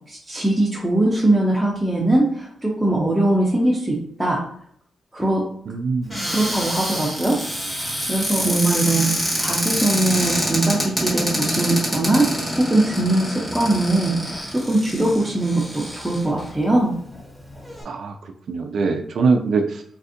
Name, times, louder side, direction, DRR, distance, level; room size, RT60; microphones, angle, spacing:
voice 1, 0.1-4.4 5.1-5.5 6.3-7.4 7.7-9.1 9.4-12.3 12.6-16.9, right 1 dB, 5° right, -4 dB, 0.5 m, -21 dB
voice 2, 5.7-6.2 8.4-8.6 8.9-9.1 17.9-18.2 18.5-19.8, right 4 dB, 60° right, 5 dB, 0.3 m, -23 dB
Cupboard open or close, 6.1-16.5 17.1-17.2 17.5-17.8, equal, 10° left, 1.1 m, -26 dB
3.4 x 2.5 x 2.5 m, 0.64 s
wide cardioid pair, 150°, 0 cm